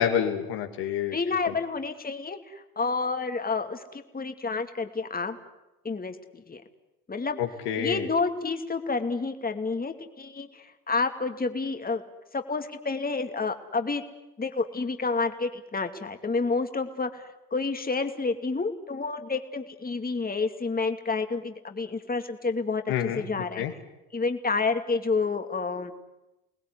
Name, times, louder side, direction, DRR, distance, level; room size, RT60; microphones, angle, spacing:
voice 1, 0.0-1.2 1.4-1.5 7.4-8.1 22.9-23.2 23.6-23.7, left 9 dB, 70° left, 4 dB, 2.9 m, -28 dB
voice 2, 1.1-5.4 5.8-6.6 7.1-7.4 7.8-12.0 12.3-14.0 14.4-23.6 24.1-25.9, left 4 dB, 20° left, 7 dB, 2.6 m, -29 dB
30.0 x 20.0 x 9.9 m, 0.98 s
hypercardioid pair, 60°, 44 cm